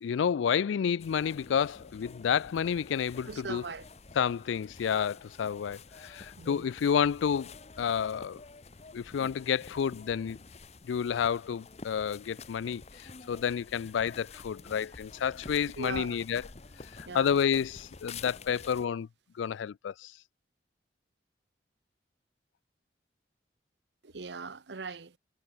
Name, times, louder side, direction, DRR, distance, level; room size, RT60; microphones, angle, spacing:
voice 1, 0.0-3.6 4.2-7.5 7.8-8.4 8.9-10.4 10.9-12.8 13.3-16.4 17.0-19.1 19.4-20.1, left 7 dB, 90° left, 0.3 m, -30 dB
sound 1, 1.0-18.9, left 4 dB, 35° left, 0.8 m, -49 dB
voice 2, 3.3-3.9 6.4-6.7 15.8-16.2 17.1-17.4 24.0-25.2, right 4 dB, 70° right, 0.8 m, -40 dB
head